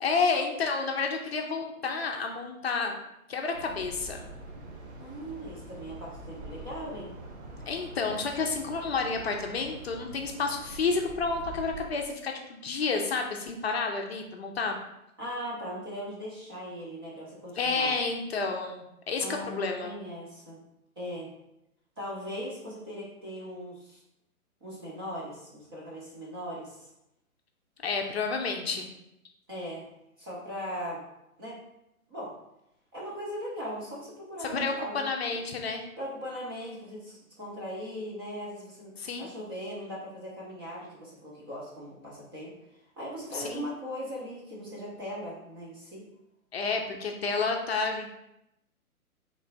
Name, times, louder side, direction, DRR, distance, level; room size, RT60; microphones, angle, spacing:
voice 1, 0.0-3.0 3.3-4.2 7.7-14.8 17.6-19.9 27.8-28.9 34.4-35.8 39.0-39.3 43.3-43.7 46.5-48.1, left 4 dB, 45° left, 3 dB, 0.6 m, -30 dB
sound 1, 3.5-11.9, right 2 dB, 50° right, 0.9 m, -44 dB
voice 2, 5.0-7.1 15.2-17.9 19.2-20.6 21.0-21.3 22.0-24.0 24.6-26.8 29.5-29.8 30.2-31.0 31.4-31.6 32.1-32.3 32.9-35.4 36.0-38.9 39.2-42.5 43.0-46.0, equal, 15° right, -5 dB, 0.6 m, -39 dB
3.3 x 3.1 x 3.9 m, 0.84 s
hypercardioid pair, 145°, 44 cm